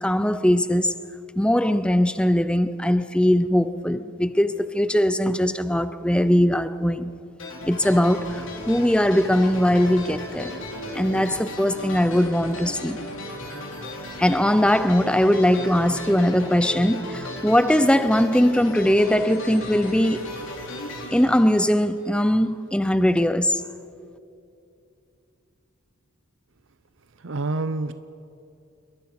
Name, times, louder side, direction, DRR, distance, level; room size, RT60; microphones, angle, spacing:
voice 1, 0.0-1.0 1.4-7.1 7.6-10.5 10.9-13.0 14.2-20.3 21.1-23.6, equal, 5° left, 0.6 m, -20 dB
sound 1, 7.4-22.2, left 1 dB, 55° left, 3.8 m, -36 dB
voice 2, 27.2-27.9, right 2 dB, 55° right, 0.7 m, -27 dB
28.0 x 22.5 x 6.1 m
head